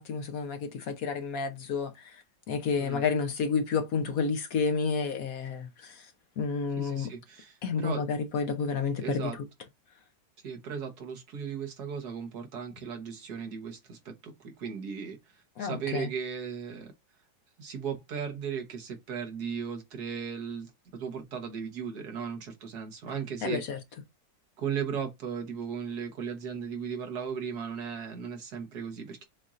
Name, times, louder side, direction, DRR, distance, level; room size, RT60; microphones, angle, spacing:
voice 1, 0.0-2.2 2.5-6.1 6.4-7.1 7.6-9.3 15.6-16.1 23.4-23.8, left 5 dB, 60° left, 1.0 m, -30 dB
voice 2, 6.8-8.0 9.0-9.4 10.4-16.9 17.6-23.6 24.6-29.3, right 7 dB, 60° right, 1.6 m, -36 dB
7.1 x 2.6 x 2.5 m
omnidirectional pair, 2.1 m